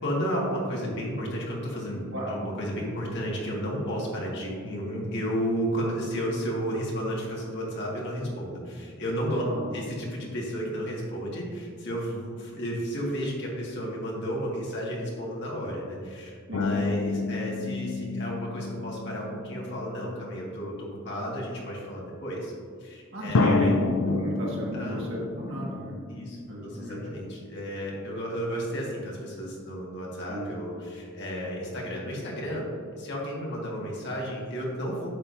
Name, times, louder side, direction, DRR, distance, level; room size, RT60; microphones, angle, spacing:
voice 1, 0.0-9.4 9.7-22.5 22.8-23.8 24.7-25.0 26.1-32.7 33.0-35.1, equal, 60° left, -3 dB, 1.9 m, -32 dB
sound 1, 16.5-20.5 21.3-21.4 23.3-26.7 27.0-27.1, left 3 dB, 85° left, 0.5 m, -29 dB
voice 2, 23.1-26.0 26.5-27.0 30.3-30.4, equal, 65° right, -3 dB, 1.8 m, -34 dB
9.9 x 6.9 x 2.7 m, 2.1 s
head